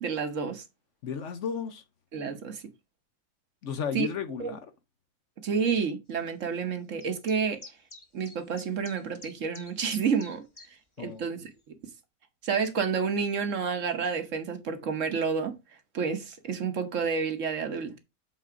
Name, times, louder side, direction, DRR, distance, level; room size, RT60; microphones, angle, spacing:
voice 1, 0.0-0.6 2.1-2.6 3.9-4.1 4.4-4.5 5.4-7.6 8.1-10.4 11.0-11.5 12.4-15.5 15.9-18.0, right 6 dB, 60° right, 1.4 m, -29 dB
voice 2, 1.0-1.8 3.6-4.7 11.0-11.2, left 6 dB, 60° left, 1.0 m, -33 dB
sound 1, 7.0-10.7, left 2 dB, 25° left, 1.0 m, -48 dB
7.6 x 3.9 x 4.8 m
omnidirectional pair, 1.6 m